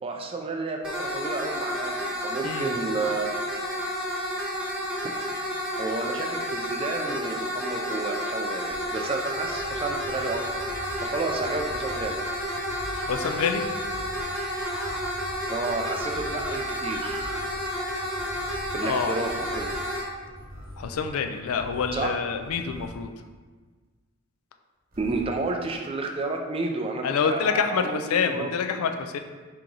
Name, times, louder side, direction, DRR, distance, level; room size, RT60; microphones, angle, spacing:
voice 1, 0.0-3.3 5.0-5.2 5.8-10.4 11.0-12.2 15.5-17.2 18.7-19.7 21.9-22.2 25.0-28.5, right 3 dB, 25° right, 2 dB, 0.3 m, -31 dB
sound 1, 0.8-20.0, equal, 5° right, 0.9 m, -31 dB
sound 2, 8.7-23.1 24.9-25.5, equal, 40° right, 1.1 m, -43 dB
sound 3, 12.9-13.5 14.2-15.0 15.9-17.4, right 1 dB, 80° right, 0.9 m, -43 dB
voice 2, 13.1-13.6 18.8-19.2 20.8-23.1 27.0-29.2, left 6 dB, 80° left, 6 dB, 0.4 m, -27 dB
4.8 x 2.9 x 3.8 m, 1.4 s
head